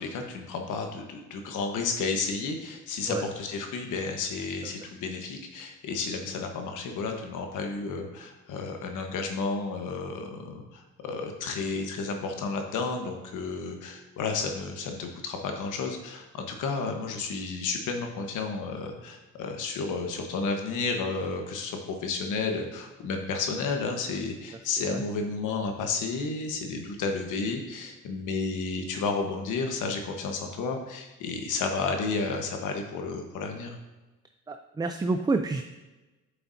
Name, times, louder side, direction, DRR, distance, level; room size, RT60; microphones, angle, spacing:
voice 1, 0.0-33.8, left 4 dB, 85° left, 4 dB, 1.3 m, -32 dB
voice 2, 34.5-35.6, right 3 dB, 15° right, 6 dB, 0.4 m, -28 dB
9.4 x 6.8 x 2.7 m, 1.1 s
cardioid pair, 90°, 30 cm